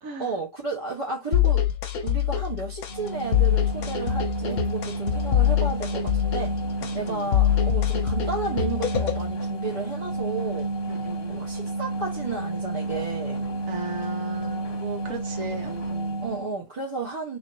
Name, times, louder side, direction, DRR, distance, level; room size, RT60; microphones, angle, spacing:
voice 1, 0.2-1.7 2.0-6.6 6.9-10.7 11.3-13.5 16.2-17.4, right 3 dB, 20° right, 1.1 m, -32 dB
sound 1, 1.3-9.3, left 11 dB, 60° left, 1.1 m, -24 dB
sound 2, 2.9-16.5, right 2 dB, 40° left, 1.2 m, -31 dB
voice 2, 6.9-7.3 10.9-11.4 13.7-16.2, right 3 dB, 55° right, 1.5 m, -37 dB
4.0 x 3.2 x 2.8 m
omnidirectional pair, 1.9 m